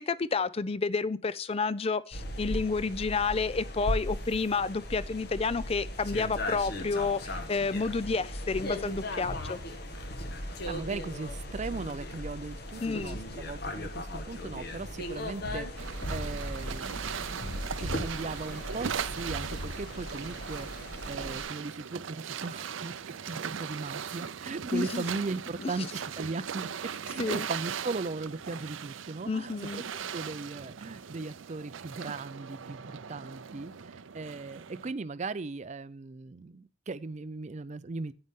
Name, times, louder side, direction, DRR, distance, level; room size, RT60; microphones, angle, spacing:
voice 1, 0.1-9.6 12.8-13.2 24.7-25.0 25.6-25.7 27.2-27.5 29.3-29.8, left 4 dB, 30° left, 0.4 m, -30 dB
sound 1, 2.1-21.4, left 1 dB, 55° left, 1.4 m, -37 dB
voice 2, 10.4-23.0 23.3-26.7 27.0-29.8 30.1-38.1, right 3 dB, 35° right, 0.5 m, -38 dB
sound 2, 15.8-34.9, right 7 dB, 85° right, 0.6 m, -39 dB
9.6 x 8.8 x 3.7 m
head